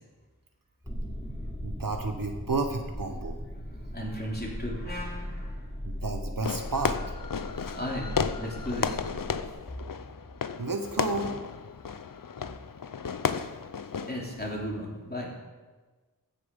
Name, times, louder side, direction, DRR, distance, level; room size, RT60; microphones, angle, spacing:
sound 1, 0.8-9.5, equal, ahead, 2.8 m, -38 dB
voice 1, 1.6-3.4 5.8-7.0 10.6-11.3, right 3 dB, 65° right, 5 dB, 1.1 m, -31 dB
voice 2, 3.9-5.7 7.7-9.0 14.1-15.3, equal, 25° left, -2 dB, 2.8 m, -35 dB
Fireworks, 6.4-14.5, left 6 dB, 65° left, 0.6 m, -33 dB
15.0 x 6.8 x 5.3 m, 1.3 s
wide cardioid pair, 45°, 36 cm